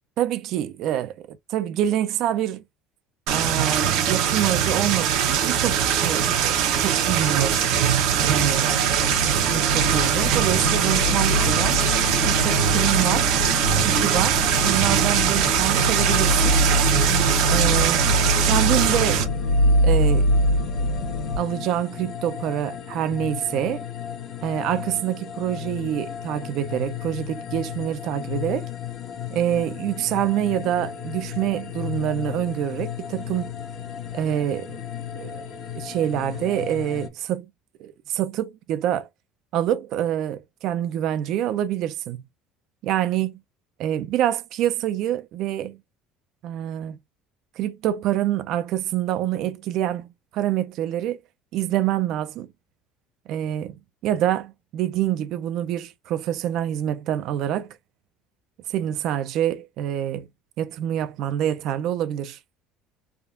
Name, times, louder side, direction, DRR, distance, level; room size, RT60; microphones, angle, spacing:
voice 1, 0.2-2.6 3.3-7.6 8.2-8.7 9.2-11.9 12.3-13.3 13.8-16.6 17.5-18.1 18.4-19.3 19.8-20.3 21.4-23.8 24.4-28.7 29.3-33.5 34.1-34.8 35.2-35.3 35.7-37.5 37.8-39.1 39.5-42.2 42.8-43.4 43.8-45.8 46.4-47.0 47.6-50.1 50.3-51.2 51.5-52.5 53.3-57.7 58.7-60.3 60.6-62.4, right 11 dB, 55° right, 0.4 m, -26 dB
sound 1, 3.3-19.2, right 9 dB, 75° right, 0.8 m, -21 dB
sound 2, 7.4-21.4, left 1 dB, 85° left, 0.7 m, -24 dB
sound 3, 18.7-37.1, left 9 dB, 45° left, 0.7 m, -34 dB
3.5 x 2.3 x 2.4 m
cardioid pair, 140°, 0 cm